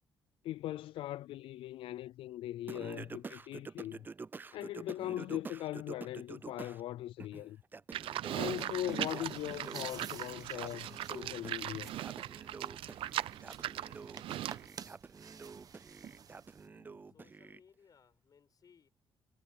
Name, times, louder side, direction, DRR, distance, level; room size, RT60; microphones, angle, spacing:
voice 1, 0.4-4.1 4.5-7.6 8.3-12.0, left 14 dB, 80° left, 0.4 m, -40 dB
Singing, 2.7-6.8 7.2-17.6, right 4 dB, 20° right, 0.4 m, -48 dB
Livestock farm animals working animals, 7.9-14.7, right 13 dB, 80° right, 0.6 m, -39 dB
sound 1, 8.6-16.7, right 7 dB, 45° right, 0.9 m, -49 dB
voice 2, 17.1-18.9, left 6 dB, 45° left, 7.7 m, -64 dB
cardioid pair, 125°, 9 cm